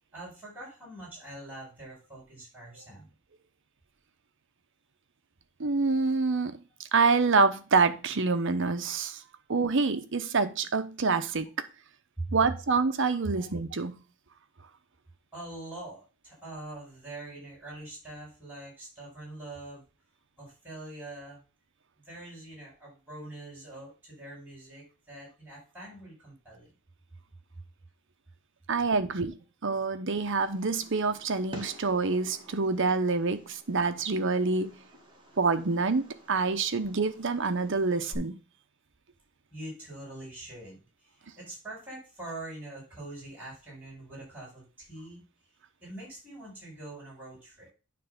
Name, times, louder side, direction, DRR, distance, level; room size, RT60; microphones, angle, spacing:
voice 1, 0.1-3.1 12.2-12.4 13.1-13.5 15.3-19.8 20.4-21.4 22.0-26.7 39.5-45.3 45.8-47.7, right 2 dB, 10° right, 5.1 m, -43 dB
voice 2, 5.6-6.6 6.9-9.2 9.5-11.5 12.3-14.0 28.7-29.4 29.6-34.8 35.4-38.3, right 4 dB, 65° right, 0.8 m, -26 dB
Fireworks, 30.2-38.2, equal, 25° right, 2.0 m, -50 dB
9.3 x 3.4 x 6.6 m
head